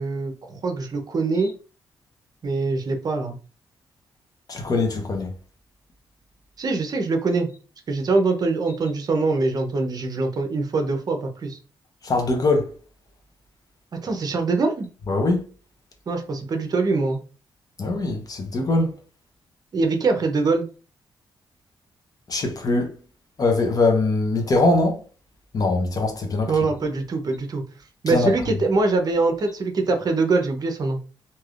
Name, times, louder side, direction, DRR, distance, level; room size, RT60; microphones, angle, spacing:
voice 1, 0.0-1.5 2.4-3.4 6.6-7.5 7.9-11.6 14.0-14.9 16.1-17.2 19.7-20.7 26.5-27.6 28.0-31.0, right 3 dB, 50° right, 0.7 m, -23 dB
voice 2, 4.5-5.3 12.0-12.7 15.1-15.4 17.8-18.9 22.3-22.9 23.4-25.0 25.5-26.5 28.1-28.3, left 2 dB, 45° left, 0.8 m, -22 dB
3.3 x 2.7 x 2.4 m
cardioid pair, 100°, 9 cm